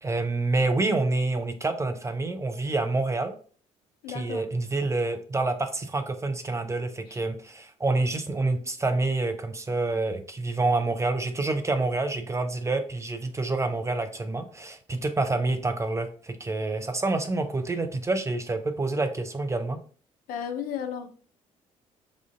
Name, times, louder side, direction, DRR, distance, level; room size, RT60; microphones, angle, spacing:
voice 1, 0.0-3.3 4.1-19.8, right 2 dB, 15° right, 7 dB, 0.4 m, -27 dB
voice 2, 4.0-4.4 7.1-7.2 20.3-21.1, left 8 dB, 55° left, 7 dB, 0.5 m, -34 dB
4.9 x 2.4 x 2.4 m, 0.43 s
figure-of-eight pair, 50°, 18 cm